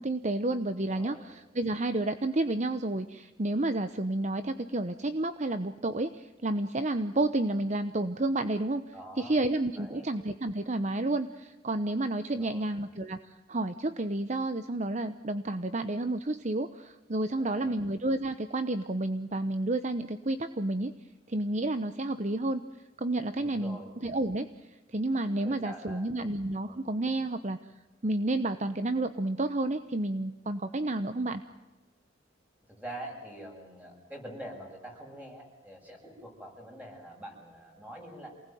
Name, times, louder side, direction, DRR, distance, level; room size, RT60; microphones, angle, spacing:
voice 1, 0.0-20.9 21.3-22.6 23.0-27.7 28.0-31.4, right 2 dB, 35° right, 10 dB, 0.9 m, -30 dB
voice 2, 0.7-1.3 8.9-9.5 9.8-10.1 12.3-12.7 17.4-17.8 23.4-23.9 25.4-26.1 26.6-26.9 32.7-38.3, right 1 dB, 10° right, 1 dB, 7.5 m, -45 dB
28.0 x 19.5 x 9.2 m, 1.1 s
head